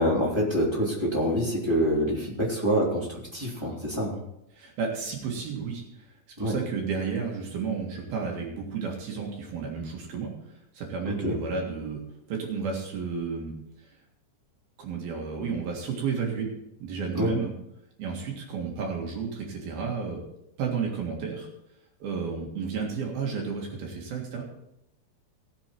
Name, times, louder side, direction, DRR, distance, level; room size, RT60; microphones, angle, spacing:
voice 1, 0.0-4.2 6.4-6.5 11.0-11.4 17.1-17.3, equal, 10° right, -4 dB, 2.1 m, -26 dB
voice 2, 4.6-6.1 6.4-10.3 10.7-12.0 12.3-13.5 14.8-16.5 16.8-17.5 18.0-20.2 20.6-21.5 22.0-24.4, right 5 dB, 60° right, 0 dB, 3.4 m, -32 dB
17.5 x 7.4 x 4.5 m, 0.82 s
omnidirectional pair, 5.3 m